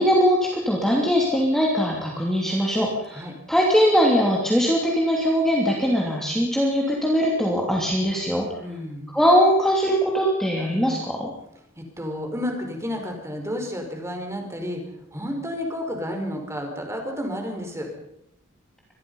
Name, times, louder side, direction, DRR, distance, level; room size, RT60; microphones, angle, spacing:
voice 1, 0.0-3.2 3.5-8.5 9.1-11.3, equal, ahead, -2 dB, 3.1 m, -21 dB
voice 2, 8.6-9.1 11.8-14.8 15.1-17.9, left 1 dB, 15° right, 3 dB, 5.0 m, -31 dB
25.5 x 20.5 x 5.6 m, 0.79 s
head